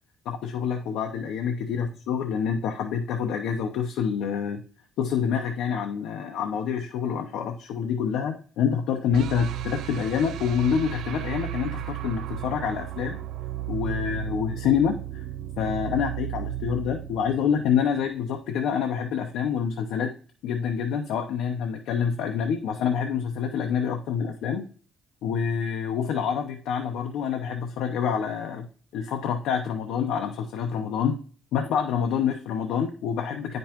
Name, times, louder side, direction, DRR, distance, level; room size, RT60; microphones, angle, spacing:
voice 1, 0.2-4.6 5.0-13.2 13.7-15.2 15.6-20.1 20.4-24.6 25.2-28.7 28.9-31.2 31.5-33.6, left 7 dB, 75° left, 4 dB, 0.8 m, -27 dB
sound 1, 9.1-18.2, right 13 dB, 65° right, 0.4 m, -34 dB
9.4 x 5.3 x 3.0 m, 0.42 s
cardioid pair, 155°, 0 cm